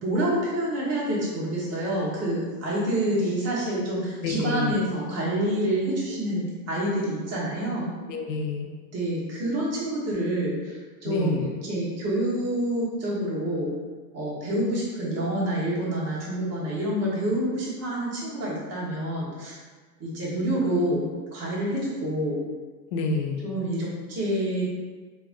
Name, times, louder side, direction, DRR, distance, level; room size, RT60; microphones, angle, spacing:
voice 1, 0.0-7.9 8.9-13.7 14.1-19.6 20.0-22.4 23.4-24.6, right 1 dB, 30° right, -6 dB, 1.2 m, -27 dB
voice 2, 4.2-4.8 8.1-8.7 11.1-11.5 22.9-23.5, left 3 dB, 80° left, 3 dB, 0.7 m, -28 dB
3.2 x 2.4 x 2.5 m, 1.4 s
hypercardioid pair, 115°, 50 cm